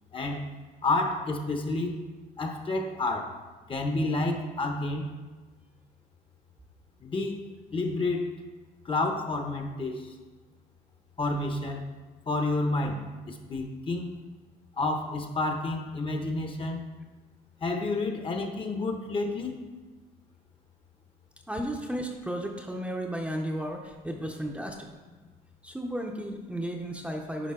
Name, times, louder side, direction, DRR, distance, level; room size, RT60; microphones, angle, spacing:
voice 1, 0.1-0.5 0.8-2.0 2.4-3.4 3.7-5.1 7.0-8.3 8.8-10.2 11.2-11.8 12.3-14.1 14.8-16.8 17.6-19.6, left 2 dB, 30° left, 4 dB, 1.0 m, -30 dB
voice 2, 21.5-24.9 25.6-27.5, right 1 dB, 5° right, 1 dB, 0.7 m, -34 dB
10.0 x 5.0 x 3.7 m, 1.3 s
cardioid pair, 110°, 17 cm